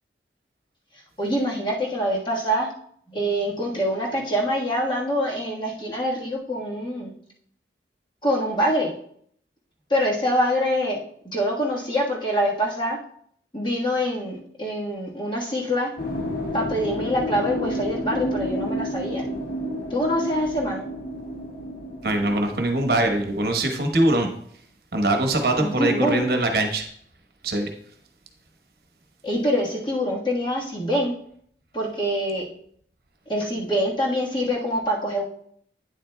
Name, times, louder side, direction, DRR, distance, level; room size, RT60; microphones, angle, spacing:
voice 1, 0.9-2.7 3.1-7.1 8.2-8.9 9.9-13.0 13.5-15.9 16.5-19.2 19.9-20.9 25.6-26.3 29.2-31.2 31.7-32.5 33.3-35.2, equal, 25° left, -3 dB, 1.4 m, -25 dB
sound 1, 16.0-23.5, equal, 60° left, 1.4 m, -31 dB
voice 2, 22.0-24.3 24.9-26.8 27.4-27.7, right 1 dB, 60° right, 4 dB, 1.0 m, -22 dB
9.3 x 7.5 x 2.2 m, 0.65 s
head